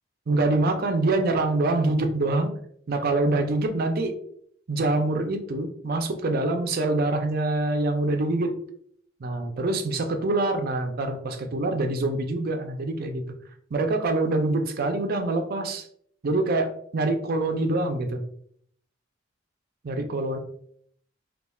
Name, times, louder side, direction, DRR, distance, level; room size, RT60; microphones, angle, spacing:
voice 1, 0.3-2.5 2.9-4.1 4.7-8.6 9.2-13.2 13.7-15.8 16.2-18.2 19.8-20.4, right 2 dB, 50° right, 5 dB, 0.5 m, -25 dB
4.2 x 2.4 x 2.3 m, 0.65 s
head